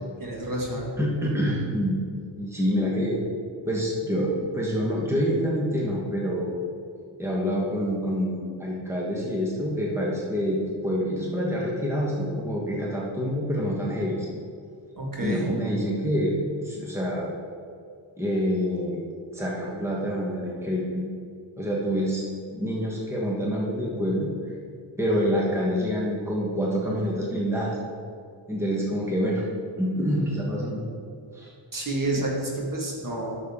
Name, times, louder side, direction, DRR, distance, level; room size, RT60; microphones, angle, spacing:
voice 1, 0.2-0.9 15.0-15.4 31.7-33.4, right 1 dB, 40° right, -3 dB, 1.9 m, -29 dB
voice 2, 1.0-2.0 2.4-3.2 3.6-6.5 7.2-14.3 15.2-16.3 16.6-17.3 18.2-19.0 19.3-21.1 21.6-22.2 22.5-24.3 25.0-27.8 28.5-29.5 29.8-30.8 31.3-31.5, equal, 5° right, -4 dB, 1.4 m, -27 dB
11.0 x 6.5 x 3.7 m, 2.3 s
wide cardioid pair, 95°, 49 cm